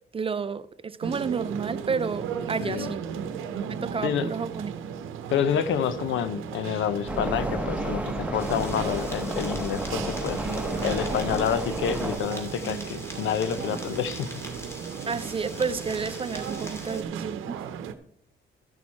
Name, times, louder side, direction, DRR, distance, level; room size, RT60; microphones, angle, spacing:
voice 1, 0.1-3.0 3.7-4.7 15.1-17.6, right 5 dB, 30° right, 0.4 m, -31 dB
sound 1, 1.0-17.9, right 7 dB, 85° right, 0.8 m, -36 dB
voice 2, 2.6-2.9 4.0-4.3 5.3-10.4 10.8-14.3, left 8 dB, 75° left, 0.7 m, -28 dB
sound 2, 7.1-12.2, right 1 dB, 5° right, 1.6 m, -31 dB
sound 3, 8.4-17.0, equal, 15° left, 2.4 m, -42 dB
13.5 x 6.3 x 4.2 m
cardioid pair, 90°, 20 cm